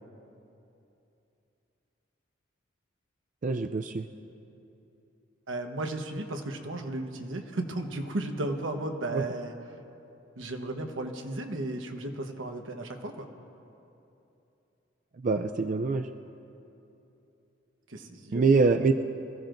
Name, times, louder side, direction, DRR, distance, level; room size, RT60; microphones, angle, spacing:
voice 1, 3.4-4.1 9.1-9.2 15.2-16.1 18.3-18.9, right 4 dB, 40° right, 6 dB, 0.4 m, -24 dB
voice 2, 5.5-9.5 10.4-13.3 17.9-18.5, right 2 dB, 85° right, 4 dB, 1.1 m, -34 dB
25.5 x 15.5 x 2.6 m, 2.9 s
head